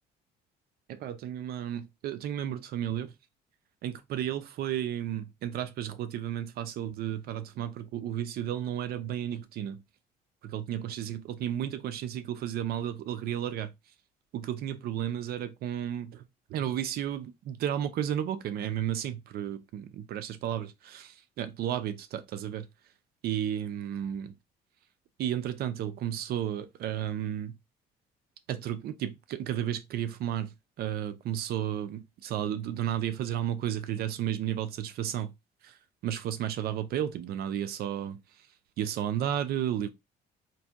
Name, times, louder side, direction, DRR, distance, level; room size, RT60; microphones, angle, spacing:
voice 1, 0.9-3.1 3.8-9.8 10.4-13.7 14.3-16.2 16.5-21.1 21.4-22.7 23.2-24.3 25.2-27.6 28.5-30.5 30.8-35.3 35.6-35.7 36.0-38.2 38.8-39.9, right 10 dB, 65° right, 0.5 m, -33 dB
4.0 x 2.6 x 2.3 m
cardioid pair, 110°, 17 cm